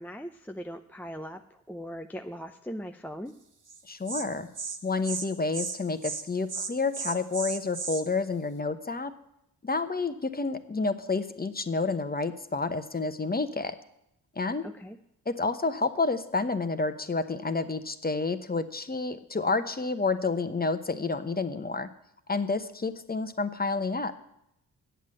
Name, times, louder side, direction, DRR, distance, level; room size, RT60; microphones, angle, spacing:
voice 1, 0.0-1.4 1.7-3.3 14.6-15.0, equal, 5° left, 5 dB, 0.6 m, -39 dB
Insect, 3.7-3.8 4.1-4.2 4.6-4.8 5.0-5.3 5.5-5.8 6.0-6.2 6.5-8.0, right 5 dB, 50° right, 1.4 m, -34 dB
voice 2, 3.9-4.5 4.8-9.1 9.6-13.8 14.4-14.6 15.3-21.9 22.3-24.1, left 3 dB, 20° left, 10 dB, 1.0 m, -29 dB
8.1 x 7.5 x 7.6 m, 0.81 s
supercardioid pair, 45°, 40 cm